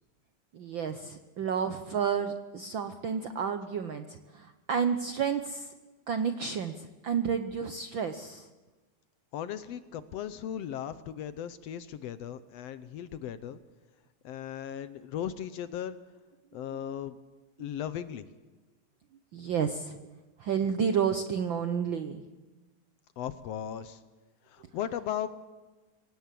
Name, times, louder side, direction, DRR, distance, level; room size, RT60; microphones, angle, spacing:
voice 1, 0.5-5.7 6.1-8.5 19.3-20.0 20.4-22.2, right 7 dB, 70° right, 9 dB, 1.1 m, -31 dB
voice 2, 9.3-13.6 14.2-16.0 16.5-17.2 17.6-18.3 23.2-24.0 24.5-25.3, left 10 dB, 70° left, 13 dB, 1.7 m, -37 dB
25.5 x 18.0 x 7.6 m, 1.2 s
omnidirectional pair, 3.3 m